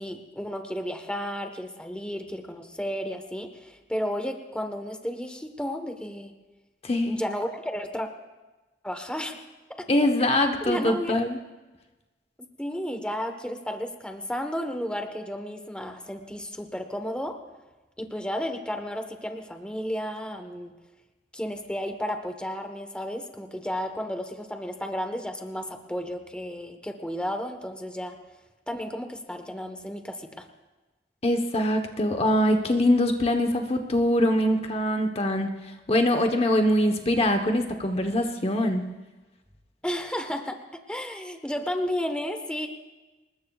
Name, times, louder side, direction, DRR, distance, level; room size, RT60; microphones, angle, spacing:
voice 1, 0.0-6.3 7.1-8.1 8.8-9.4 9.8-9.9 10.2-10.3 10.6-11.1 12.4-17.4 18.0-20.7 21.3-28.2 28.7-30.4 39.8-42.7, equal, 5° left, 5 dB, 1.2 m, -33 dB
voice 2, 6.8-7.2 9.9-11.4 31.2-35.5 35.9-38.8, left 1 dB, 35° left, 5 dB, 1.0 m, -23 dB
27.0 x 20.5 x 2.4 m, 1.2 s
head